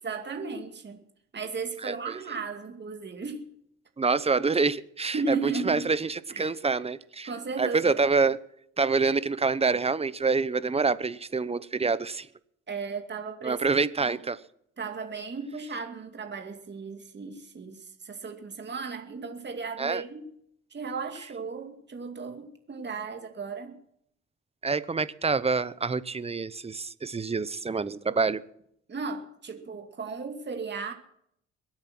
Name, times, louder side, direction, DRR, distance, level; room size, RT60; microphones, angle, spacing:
voice 1, 0.0-1.0 1.3-3.5 5.1-5.9 6.3-6.5 7.2-7.9 12.7-14.2 14.8-20.3 20.7-23.8 28.9-30.9, right 4 dB, 35° right, 5 dB, 2.4 m, -35 dB
voice 2, 4.0-5.4 5.7-7.3 7.6-8.4 8.8-12.3 13.4-14.4 19.8-20.0 24.6-28.4, right 4 dB, 20° right, 17 dB, 0.8 m, -26 dB
23.0 x 8.9 x 6.1 m, 0.71 s
cardioid pair, 90°, 30 cm